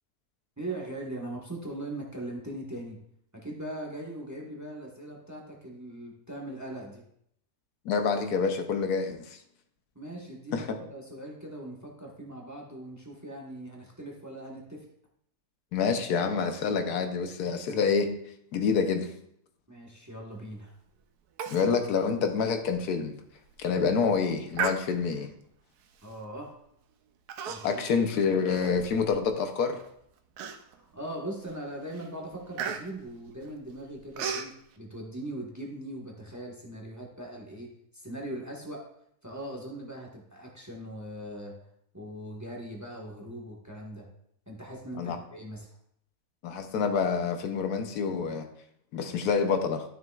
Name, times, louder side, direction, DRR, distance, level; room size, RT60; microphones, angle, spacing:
voice 1, 0.6-3.0 3.3-7.0 9.9-14.9 19.7-20.8 26.0-26.5 27.5-28.2 30.6-38.9 39.2-41.6 41.9-44.1 44.5-45.7, right 1 dB, 10° right, 0 dB, 1.1 m, -40 dB
voice 2, 7.8-9.4 10.5-10.8 15.7-18.2 18.5-19.1 21.5-23.2 23.6-25.3 27.6-29.8 45.0-45.2 46.4-48.5 48.9-49.8, left 5 dB, 85° left, 6 dB, 1.3 m, -27 dB
Human voice, 21.4-21.7 22.0-22.1 22.6-22.8 23.3-23.6 24.5-25.3 26.0-26.3 27.3-27.9 28.3-29.3 29.8-29.9 30.4-30.9 31.4-31.6 31.9-34.5, right 7 dB, 85° right, 1.2 m, -36 dB
12.0 x 6.4 x 2.4 m, 0.71 s
omnidirectional pair, 1.6 m